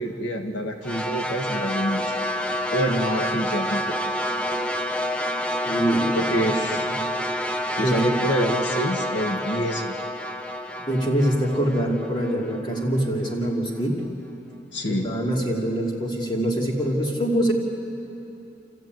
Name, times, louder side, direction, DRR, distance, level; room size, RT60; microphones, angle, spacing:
voice 1, 0.0-2.2 2.7-3.9 6.2-6.9 7.8-9.9 14.7-15.1, equal, 80° left, 3 dB, 1.6 m, -26 dB
sound 1, 0.8-13.1, equal, 5° left, 0.6 m, -28 dB
voice 2, 5.7-6.3 6.9-7.0 7.8-8.1 10.8-14.0 14.9-17.5, right 1 dB, 25° left, -1 dB, 2.8 m, -24 dB
29.0 x 14.5 x 9.3 m, 3.0 s
head